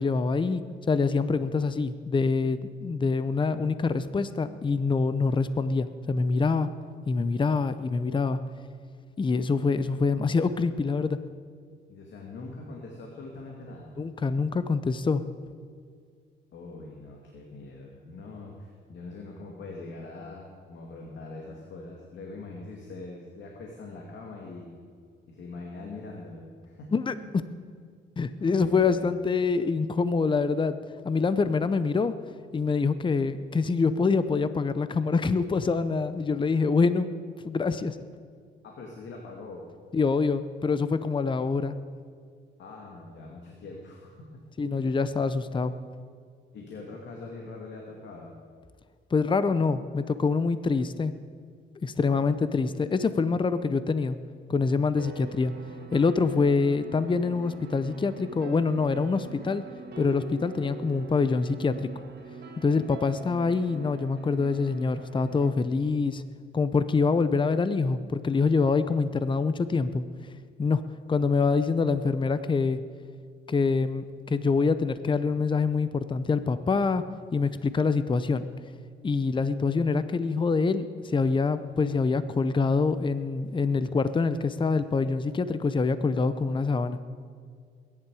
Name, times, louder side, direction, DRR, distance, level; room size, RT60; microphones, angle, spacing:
voice 1, 0.0-6.7 7.1-8.4 9.2-11.2 14.0-15.2 26.9-27.1 28.2-30.8 31.0-32.1 32.5-37.1 37.4-38.0 39.9-41.8 44.6-45.7 49.1-51.1 51.8-54.2 54.5-55.5 55.9-59.6 60.0-61.9 62.6-66.2 66.5-70.0 70.6-70.8 71.1-72.8 73.5-77.0 77.3-78.5 79.0-87.0, left 4 dB, 25° left, 13 dB, 0.7 m, -25 dB
voice 2, 11.9-13.9 16.5-24.7 25.3-26.9 28.4-29.1 38.6-39.7 42.6-44.4 44.8-45.0 46.5-48.3 54.8-55.0, left 3 dB, 65° left, 0 dB, 2.3 m, -42 dB
sound 1, 55.0-65.5, right 4 dB, 55° right, 1.7 m, -44 dB
21.5 x 10.5 x 4.9 m, 2.1 s
cardioid pair, 90°, 20 cm